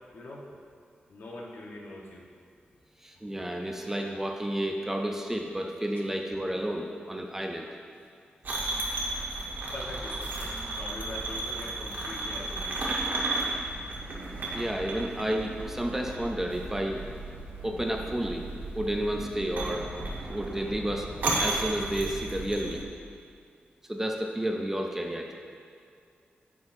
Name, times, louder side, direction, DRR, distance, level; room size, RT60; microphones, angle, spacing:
voice 1, 0.1-0.5 1.1-2.3 5.9-6.0 9.7-12.9, left 1 dB, 70° left, -2 dB, 1.0 m, -42 dB
voice 2, 3.0-7.7 14.5-17.0 17.6-18.5 18.7-19.9 20.3-21.1 21.4-22.8 23.8-25.3, right 1 dB, 10° right, 2 dB, 0.4 m, -31 dB
sound 1, 8.4-22.8, right 2 dB, 65° right, 1.1 m, -34 dB
9.5 x 6.1 x 2.6 m, 2.3 s
wide cardioid pair, 165°, 4 cm